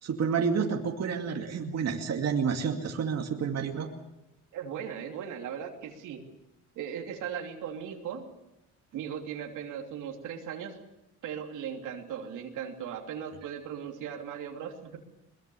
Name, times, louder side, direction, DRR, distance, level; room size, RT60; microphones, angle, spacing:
voice 1, 0.0-3.9, right 6 dB, 60° right, 2 dB, 2.4 m, -29 dB
voice 2, 4.5-6.2 6.7-8.3 8.9-10.8 11.2-15.0, right 8 dB, 85° right, 2 dB, 3.0 m, -38 dB
22.5 x 21.0 x 7.0 m, 0.92 s
cardioid pair, 90°, 30 cm